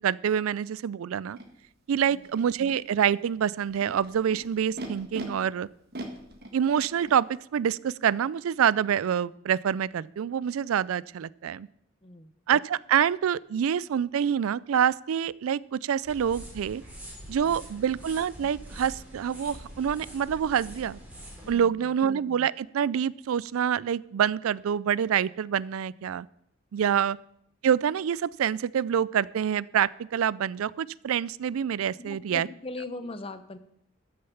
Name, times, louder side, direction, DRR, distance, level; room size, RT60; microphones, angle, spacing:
voice 1, 0.0-1.4 1.9-5.7 6.5-11.7 12.5-16.8 17.3-21.0 21.5-26.3 26.7-27.2 27.6-32.5, right 8 dB, 85° right, 21 dB, 0.4 m, -26 dB
Animal, 1.4-1.5 2.2-2.7 3.6-5.2 5.9-7.2, right 1 dB, 50° right, 1.7 m, -40 dB
voice 2, 12.0-12.3 17.4-17.7 21.4-21.9 26.8-27.0 32.0-33.6, left 2 dB, 25° left, 11 dB, 0.8 m, -40 dB
sound 1, 16.0-21.5, equal, 10° right, 3.4 m, -44 dB
13.5 x 6.7 x 7.0 m, 0.73 s
head